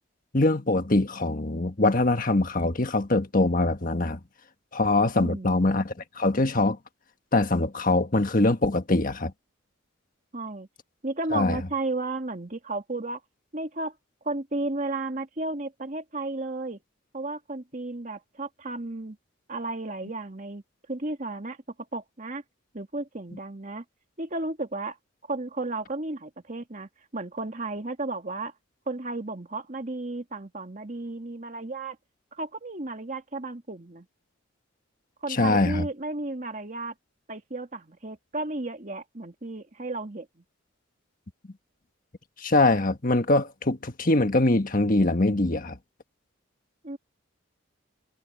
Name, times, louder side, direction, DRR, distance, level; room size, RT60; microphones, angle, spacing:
voice 1, 0.3-4.2 4.7-6.8 7.3-9.3 11.3-11.6 35.3-35.9 42.4-45.8, left 2 dB, 45° left, 1.5 m, -23 dB
voice 2, 5.2-5.8 10.3-10.7 11.0-13.2 13.5-14.0 14.2-16.8 17.1-19.2 19.5-20.6 20.9-21.6 21.9-22.4 22.7-23.8 24.2-25.0 25.3-28.5 28.9-32.0 32.3-34.1 35.2-36.9 37.3-40.3 46.8-47.0, right 2 dB, 40° right, 1.9 m, -33 dB
head